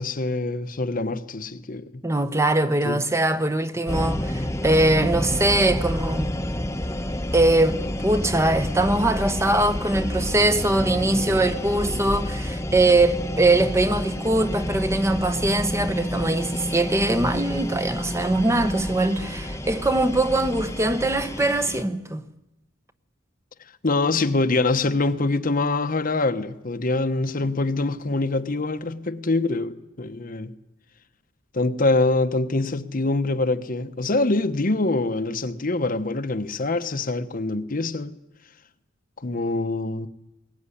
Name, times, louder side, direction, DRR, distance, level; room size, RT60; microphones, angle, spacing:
voice 1, 0.0-2.0 2.8-3.0 23.8-30.5 31.5-38.1 39.2-40.1, left 2 dB, 45° left, 1.0 m, -24 dB
voice 2, 2.0-6.3 7.3-22.2, right 2 dB, 15° right, 1.0 m, -22 dB
sound 1, 3.9-21.8, equal, 15° left, 1.0 m, -29 dB
21.5 x 18.5 x 9.9 m
head